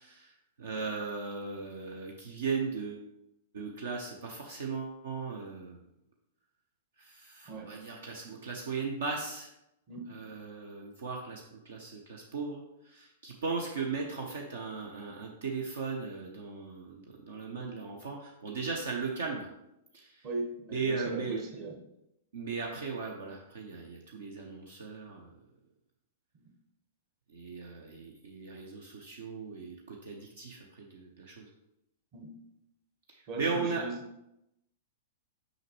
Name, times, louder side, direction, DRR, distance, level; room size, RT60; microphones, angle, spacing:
voice 1, 0.0-3.1 3.5-5.9 7.0-9.5 10.1-19.5 19.9-20.3 20.7-21.4 22.3-25.3 27.3-31.5 33.1-33.8, right 4 dB, 65° right, 1 dB, 0.7 m, -37 dB
voice 2, 20.2-21.7 26.4-26.5 32.1-32.3 33.3-33.9, right 3 dB, 40° right, 2 dB, 1.2 m, -38 dB
6.5 x 5.2 x 3.0 m, 0.85 s
figure-of-eight pair, 100°, 0 cm